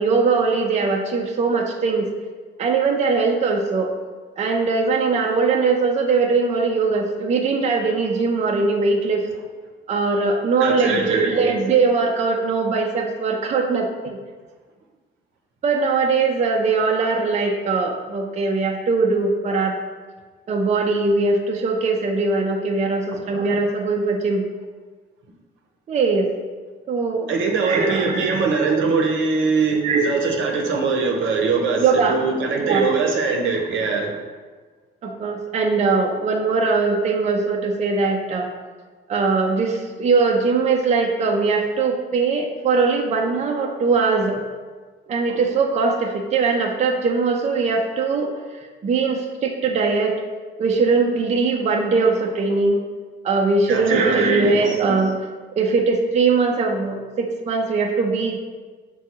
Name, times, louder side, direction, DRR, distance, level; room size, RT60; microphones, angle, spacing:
voice 1, 0.0-2.1 2.6-3.9 4.4-9.3 9.9-14.2 15.6-19.8 20.5-24.4 25.9-26.3 26.9-27.3 27.6-28.4 29.8-30.1 31.8-32.2 32.6-32.9 35.0-38.5 39.1-44.4 45.1-50.2 50.6-52.8 53.2-55.2 55.5-58.4, right 4 dB, 35° right, 2 dB, 0.4 m, -21 dB
voice 2, 10.6-11.5 27.3-34.1 53.7-54.8, right 4 dB, 75° right, 1 dB, 0.7 m, -22 dB
5.9 x 2.2 x 2.8 m, 1.4 s
cardioid pair, 90°, 20 cm